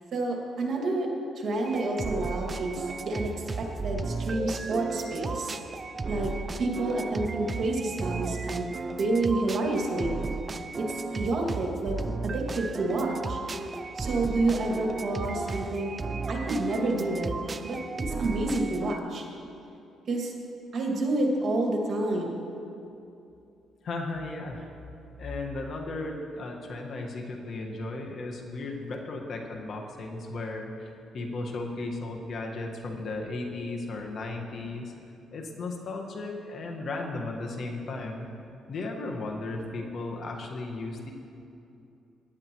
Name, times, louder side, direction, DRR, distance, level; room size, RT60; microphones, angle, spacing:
voice 1, 0.1-1.1 1.4-3.3 3.6-5.5 6.1-6.3 6.6-8.7 9.0-10.1 10.8-13.4 14.0-15.9 16.3-17.3 17.6-17.8 18.1-19.2 20.1-20.3 20.7-22.4, right 2 dB, 55° right, 0 dB, 2.1 m, -29 dB
sound 1, 1.7-19.0, right 3 dB, 30° right, 0.5 m, -34 dB
voice 2, 23.8-24.7 25.2-30.9 31.1-34.9 35.3-38.3 38.7-41.1, left 2 dB, 55° left, 2 dB, 1.5 m, -35 dB
18.0 x 10.5 x 3.1 m, 2.7 s
cardioid pair, 90°, 0 cm